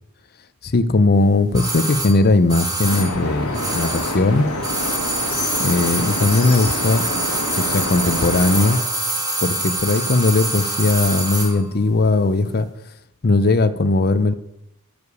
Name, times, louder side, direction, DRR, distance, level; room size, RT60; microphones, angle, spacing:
voice 1, 0.6-4.5 5.6-7.1 7.5-8.8 9.4-12.7 13.2-14.3, left 3 dB, 45° left, 12 dB, 0.6 m, -18 dB
sound 1, 1.5-4.3 4.6-11.6 11.8-11.9, right 2 dB, 20° right, 2.0 m, -25 dB
sound 2, 2.8-8.8, left 2 dB, 75° left, 1.9 m, -27 dB
10.0 x 4.9 x 8.2 m, 0.82 s
head